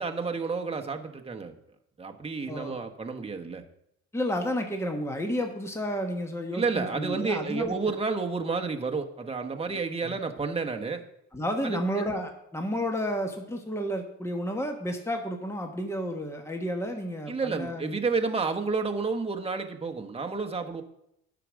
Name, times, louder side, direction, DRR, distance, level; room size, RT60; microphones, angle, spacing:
voice 1, 0.0-1.5 2.0-3.6 6.5-11.0 11.6-11.8 17.3-20.8, right 4 dB, 20° right, 4 dB, 1.2 m, -30 dB
voice 2, 2.5-2.8 4.1-7.7 10.0-10.2 11.3-18.0, equal, 10° left, 4 dB, 1.3 m, -31 dB
9.8 x 6.1 x 6.3 m, 0.78 s
cardioid pair, 90°, 30 cm